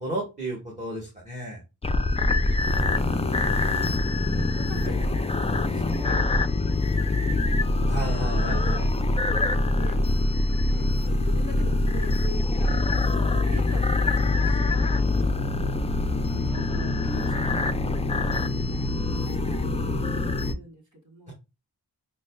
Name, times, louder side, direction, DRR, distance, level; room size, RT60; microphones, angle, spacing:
voice 1, 0.0-1.6 7.9-8.9 16.3-17.3 21.3-21.4, right 1 dB, 15° right, -4 dB, 1.3 m, -34 dB
sound 1, 1.8-20.5, left 2 dB, 15° left, 0.3 m, -24 dB
voice 2, 2.1-3.6 4.3-7.7 9.0-10.0 10.7-14.9 16.0-18.4 19.1-21.3, right 1 dB, 45° right, 0 dB, 1.3 m, -43 dB
6.2 x 2.2 x 2.2 m, 0.26 s
wide cardioid pair, 65°, 43 cm